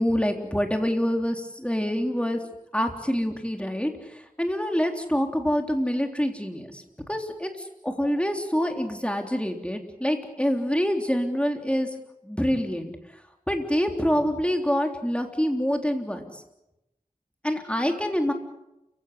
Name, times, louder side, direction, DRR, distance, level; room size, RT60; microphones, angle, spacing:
voice 1, 0.0-2.4 2.7-6.8 7.1-7.5 7.8-11.9 12.2-12.9 13.5-16.4 17.4-18.3, equal, 10° left, 4 dB, 3.6 m, -26 dB
29.0 x 16.5 x 8.2 m, 0.91 s
wide cardioid pair, 45°, 14 cm